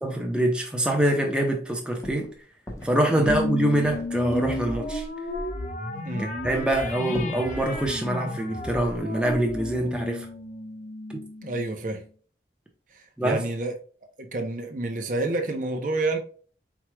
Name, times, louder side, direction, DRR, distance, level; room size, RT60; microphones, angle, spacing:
voice 1, 0.0-2.3 2.8-5.0 6.4-10.3 11.1-11.2 13.2-13.4, right 1 dB, 5° right, 0.8 m, -25 dB
sound 1, 1.5-1.6 1.9-2.3 2.7-3.0 3.3-4.6 5.6-5.7 5.9-6.0 6.4-7.4, left 1 dB, 20° left, 1.0 m, -38 dB
sound 2, 3.2-12.0, left 1 dB, 45° left, 0.8 m, -33 dB
voice 2, 11.4-12.0 12.9-13.7 14.2-16.2, right 2 dB, 45° right, 0.7 m, -29 dB
4.7 x 4.5 x 2.2 m
head